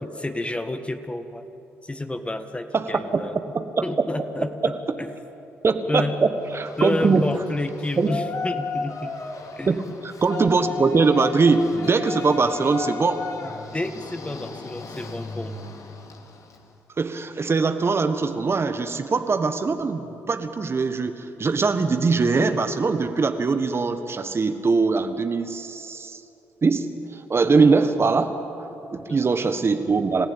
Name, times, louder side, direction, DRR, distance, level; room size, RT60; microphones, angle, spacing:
voice 1, 0.0-1.5 1.8-3.4 3.8-5.1 5.9-6.2 6.8-9.2 9.6-9.8 13.4-15.6 29.1-29.5, left 2 dB, 15° left, 8 dB, 1.7 m, -30 dB
voice 2, 2.7-3.2 3.5-3.8 4.6-4.7 5.6-6.3 6.5-7.3 8.0-8.1 9.7-9.8 10.2-13.2 17.0-26.2 26.6-30.3, right 4 dB, 40° right, 8 dB, 1.5 m, -22 dB
Yell, 6.4-16.7, left 4 dB, 55° left, 2.6 m, -35 dB
28.5 x 15.5 x 8.9 m, 2.9 s
hypercardioid pair, 50°, 7 cm